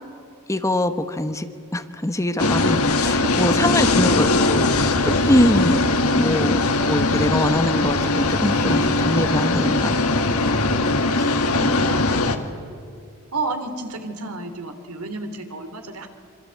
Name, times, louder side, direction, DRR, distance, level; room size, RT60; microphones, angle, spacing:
voice 1, 0.5-1.5 1.7-5.8 6.1-10.0 11.1-11.3, left 1 dB, 15° left, 9 dB, 1.2 m, -23 dB
sound 1, 2.4-12.4, left 2 dB, 85° left, 1.8 m, -20 dB
voice 2, 3.0-3.9 4.8-4.9 11.5-12.4 13.3-16.1, right 2 dB, 85° right, 8 dB, 3.0 m, -32 dB
26.0 x 25.5 x 8.7 m, 2.5 s
head